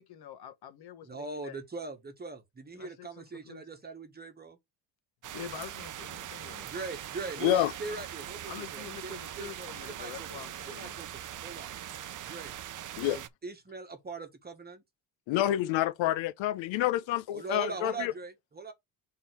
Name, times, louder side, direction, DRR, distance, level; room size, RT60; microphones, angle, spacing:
voice 1, 0.0-1.6 2.7-3.6 5.3-6.7 8.5-11.0 17.8-18.1, left 9 dB, 55° left, 1.3 m, -46 dB
voice 2, 1.0-4.6 6.6-11.7 12.2-12.5 13.0-14.8 17.3-18.7, right 4 dB, 20° right, 1.3 m, -41 dB
sound 1, 5.2-13.3, right 11 dB, 45° right, 0.6 m, -41 dB
voice 3, 7.4-7.7 13.0-13.2 15.3-18.1, left 13 dB, 80° left, 0.8 m, -28 dB
6.3 x 3.8 x 4.4 m
cardioid pair, 125°, 46 cm